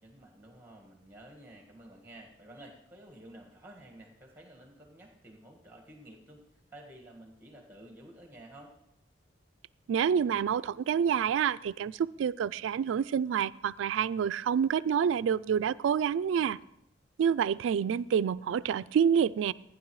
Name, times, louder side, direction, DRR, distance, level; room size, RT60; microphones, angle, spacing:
voice 1, 0.0-8.7, right 1 dB, 10° right, 1 dB, 1.7 m, -52 dB
voice 2, 9.9-16.6 17.2-19.5, right 7 dB, 90° right, 20 dB, 0.3 m, -28 dB
15.0 x 9.7 x 3.1 m, 0.82 s
head